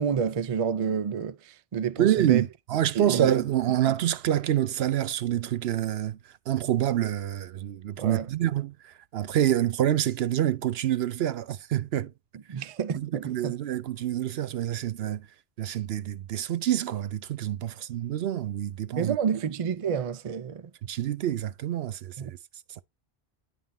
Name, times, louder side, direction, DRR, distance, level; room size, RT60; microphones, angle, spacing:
voice 1, 0.0-2.4 3.0-3.3 8.0-8.3 12.5-13.6 19.0-20.7 22.2-22.3, right 7 dB, 45° right, 0.4 m, -29 dB
voice 2, 2.0-12.1 13.0-15.3 15.6-19.2 20.8-22.4 22.7-22.8, right 11 dB, 75° right, 0.9 m, -27 dB
10.0 x 3.8 x 4.2 m
omnidirectional pair, 1.1 m